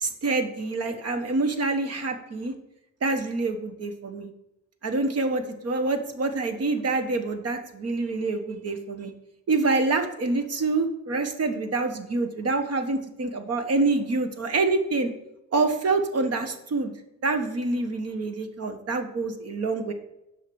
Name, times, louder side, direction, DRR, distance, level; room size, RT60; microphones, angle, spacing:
voice 1, 0.0-2.5 3.0-4.3 4.8-9.1 9.5-15.1 15.5-16.9 17.2-19.9, right 3 dB, 55° right, 7 dB, 1.4 m, -26 dB
8.0 x 5.7 x 6.3 m, 0.88 s
cardioid pair, 90°, 30 cm